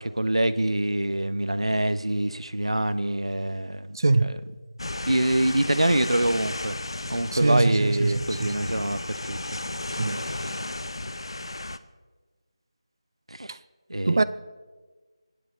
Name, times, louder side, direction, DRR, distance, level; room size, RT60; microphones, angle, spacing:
voice 1, 0.0-4.0 5.1-6.8 7.1-9.6 10.3-10.5 13.3-13.5 13.9-14.2, right 1 dB, 75° right, 0.9 m, -25 dB
voice 2, 3.9-4.4 7.3-8.6 10.0-10.2 13.5-13.6 14.1-14.2, right 3 dB, 45° right, 0.5 m, -23 dB
sound 1, 4.8-11.8, left 2 dB, 55° left, 0.7 m, -34 dB
25.0 x 9.8 x 4.1 m
figure-of-eight pair, 165°, 3 cm